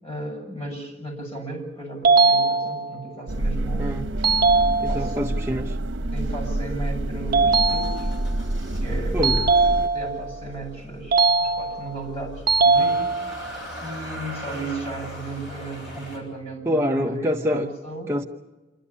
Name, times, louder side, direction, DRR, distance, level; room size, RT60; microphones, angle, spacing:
voice 1, 0.0-4.1 4.9-5.2 6.1-8.1 8.8-9.4 9.9-13.2 13.8-18.1, right 2 dB, 30° left, 1 dB, 7.9 m, -35 dB
sound 1, 2.0-3.1 4.2-5.2 7.3-8.3 9.2-10.3 11.1-12.0 12.5-13.5, right 4 dB, 50° right, 0.8 m, -20 dB
sound 2, 3.3-9.9, right 1 dB, 85° right, 1.0 m, -27 dB
voice 2, 4.8-5.8 9.1-9.4 16.7-17.7 18.1-18.2, equal, 15° right, 1 dB, 0.7 m, -25 dB
Motor vehicle (road) / Engine starting, 7.6-16.2, equal, 70° left, 7.7 m, -40 dB
28.0 x 12.5 x 9.9 m, 1.2 s
head